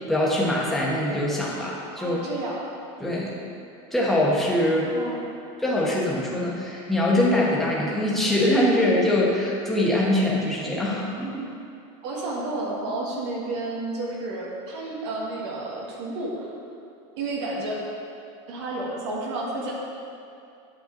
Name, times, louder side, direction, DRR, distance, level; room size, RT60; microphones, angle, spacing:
voice 1, 0.1-2.2 3.0-3.3 3.9-4.9 5.6-11.4, left 1 dB, ahead, -6 dB, 1.1 m, -23 dB
voice 2, 2.0-2.6 4.9-5.3 12.0-16.5 17.2-17.8 18.5-19.7, right 2 dB, 70° right, -3 dB, 1.6 m, -31 dB
9.1 x 7.5 x 3.8 m, 2.5 s
supercardioid pair, 175°, 15 cm